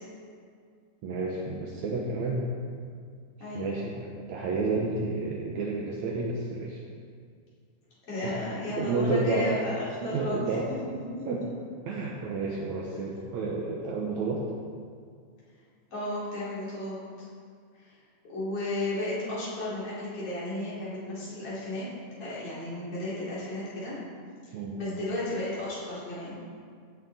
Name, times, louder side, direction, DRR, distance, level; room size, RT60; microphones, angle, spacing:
voice 1, 1.0-2.5 3.5-6.8 8.2-8.4 8.8-9.6 10.0-10.7 11.3-11.4 11.9-14.5 24.5-24.8, right 3 dB, 70° right, -2 dB, 2.0 m, -30 dB
voice 2, 3.4-3.8 8.1-11.3 15.9-17.0 17.7-17.9 18.3-21.9 22.2-24.0 24.8-26.4, left 1 dB, 45° left, -9 dB, 3.8 m, -34 dB
15.5 x 7.1 x 4.1 m, 2.1 s
omnidirectional pair, 3.9 m